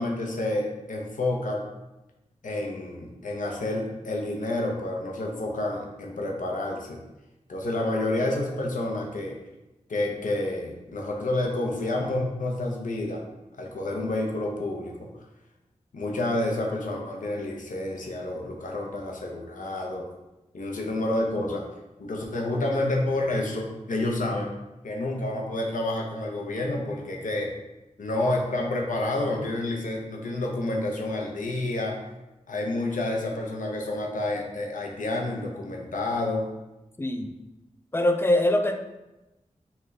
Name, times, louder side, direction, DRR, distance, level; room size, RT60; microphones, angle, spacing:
voice 1, 0.0-1.7 2.4-7.0 7.5-9.4 9.9-13.2 13.6-15.1 15.9-20.1 20.5-21.7 22.0-24.5 24.8-27.5 28.0-32.0 32.5-36.5, left 2 dB, 75° left, 0 dB, 0.8 m, -29 dB
voice 2, 37.0-37.3 37.9-38.8, left 1 dB, 15° left, 6 dB, 0.4 m, -23 dB
5.6 x 2.3 x 3.2 m, 1.0 s
wide cardioid pair, 65°, 13 cm